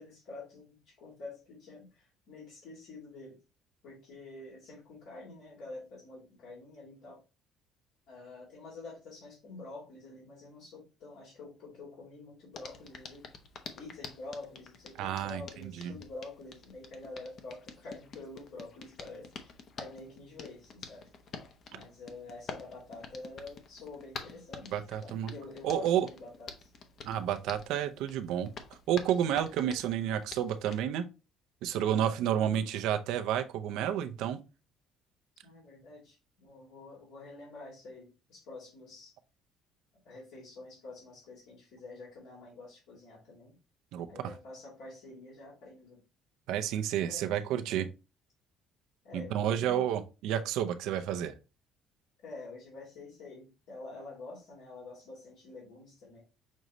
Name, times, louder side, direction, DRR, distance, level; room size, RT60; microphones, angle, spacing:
voice 1, 0.0-3.4 3.8-7.2 8.1-13.3 13.8-21.1 21.7-26.7 31.7-32.7 35.4-39.1 40.0-43.5 44.1-46.0 47.1-47.8 49.0-49.9 52.2-56.2, left 3 dB, 80° left, 2.4 m, -48 dB
Hands, 12.5-30.8, left 5 dB, 50° left, 0.8 m, -48 dB
voice 2, 15.0-15.4 15.8-15.9 24.7-25.3 25.6-26.1 27.0-28.5 28.9-31.1 31.6-34.4 43.9-44.1 46.5-47.9 49.1-51.3, right 10 dB, 80° right, 0.6 m, -30 dB
6.2 x 2.7 x 3.0 m
cardioid pair, 100°, 0 cm